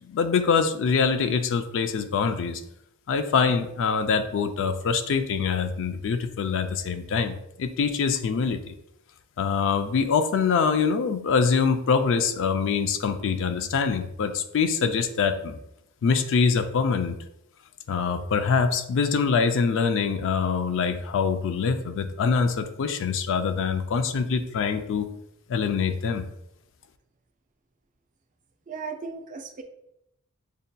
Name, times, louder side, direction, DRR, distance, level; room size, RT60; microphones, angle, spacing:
voice 1, 0.1-2.6 3.1-8.7 9.4-15.6 16.0-17.2 17.9-25.1 25.5-26.3, left 5 dB, 60° left, 9 dB, 0.4 m, -24 dB
voice 2, 28.7-29.6, right 4 dB, 35° right, 5 dB, 0.4 m, -36 dB
6.3 x 2.7 x 2.2 m, 0.81 s
head